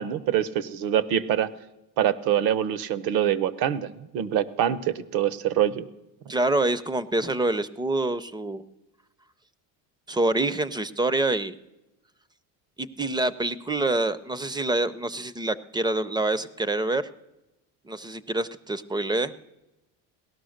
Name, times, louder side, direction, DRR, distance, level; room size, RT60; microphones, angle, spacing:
voice 1, 0.0-1.5 2.0-5.9, right 10 dB, 65° right, 18 dB, 0.9 m, -25 dB
voice 2, 6.3-8.6 10.1-11.6 12.8-17.1 17.9-19.3, right 2 dB, 10° right, 17 dB, 0.4 m, -26 dB
17.5 x 12.5 x 6.4 m, 0.96 s
cardioid pair, 120°, 39 cm